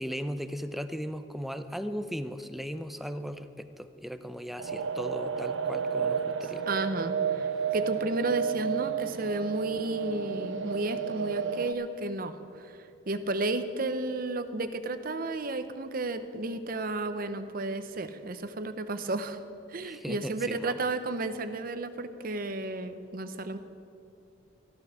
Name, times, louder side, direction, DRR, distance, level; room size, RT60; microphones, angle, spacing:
voice 1, 0.0-6.6 19.8-20.9, equal, ahead, 10 dB, 0.5 m, -37 dB
sound 1, 4.6-11.7, right 7 dB, 80° right, 0.6 m, -32 dB
voice 2, 6.7-7.5 7.7-12.3 12.6-12.7 13.1-19.4 19.7-23.6, right 2 dB, 50° right, 10 dB, 0.8 m, -32 dB
14.0 x 12.5 x 5.8 m, 2.6 s
head